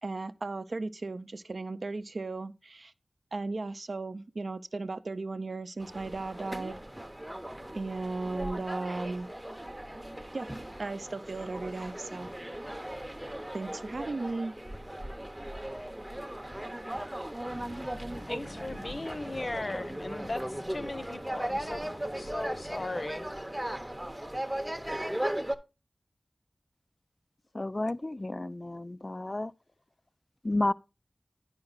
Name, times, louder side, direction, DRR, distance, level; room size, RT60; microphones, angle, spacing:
voice 1, 0.0-2.9 3.3-6.8 7.7-9.3 10.3-10.5 10.8-12.3 13.5-14.5, right 3 dB, 75° right, 0.5 m, -36 dB
sound 1, 5.8-25.5, right 1 dB, 15° right, 0.6 m, -38 dB
Waves surf, 17.4-23.1, left 1 dB, 80° left, 1.3 m, -48 dB
voice 2, 18.3-20.4 20.7-23.3, left 2 dB, 55° left, 0.8 m, -37 dB
voice 3, 27.5-29.5 30.4-30.7, left 2 dB, 35° left, 0.3 m, -31 dB
9.7 x 5.2 x 3.9 m
wide cardioid pair, 65°, 0 cm